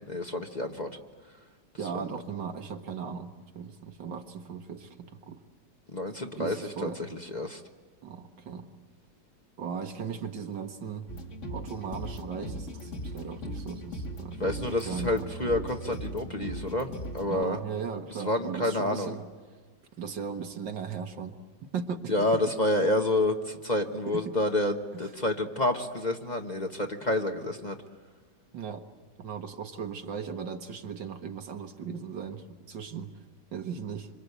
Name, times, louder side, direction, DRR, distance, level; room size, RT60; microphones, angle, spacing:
voice 1, 0.1-1.0 1.9-2.1 5.9-7.6 14.4-17.6 18.2-19.2 22.1-27.8, left 1 dB, 25° left, 3 dB, 1.2 m, -29 dB
voice 2, 1.8-5.4 6.4-7.0 8.0-8.7 9.6-11.1 11.5-15.3 17.2-19.2 20.0-21.3 21.7-22.3 24.1-24.3 28.5-28.9 29.2-33.1 33.5-34.1, right 6 dB, 80° right, 5 dB, 2.2 m, -37 dB
sound 1, 11.1-17.5, equal, 40° left, 2.2 m, -38 dB
26.5 x 26.0 x 8.2 m, 1.5 s
omnidirectional pair, 1.9 m